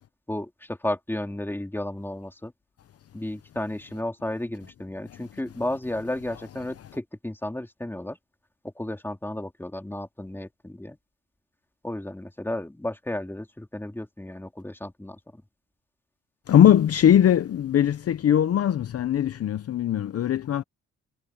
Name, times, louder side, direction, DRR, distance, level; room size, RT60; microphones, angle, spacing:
voice 1, 0.3-2.5 3.1-8.2 8.8-11.0 11.8-15.4, left 1 dB, 5° left, 3.5 m, -33 dB
voice 2, 16.5-20.6, left 10 dB, 50° left, 0.8 m, -20 dB
cardioid pair, 90°, 30 cm